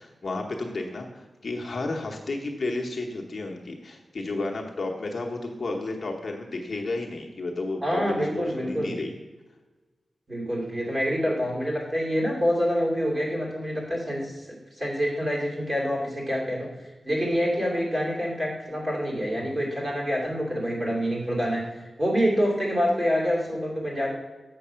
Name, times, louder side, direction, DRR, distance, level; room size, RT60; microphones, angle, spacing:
voice 1, 0.0-9.1, left 2 dB, 45° left, 0 dB, 0.9 m, -32 dB
voice 2, 7.8-8.9 10.3-24.1, equal, 25° right, -3 dB, 2.6 m, -27 dB
7.5 x 6.6 x 5.6 m, 1.2 s
wide cardioid pair, 170°, 0 cm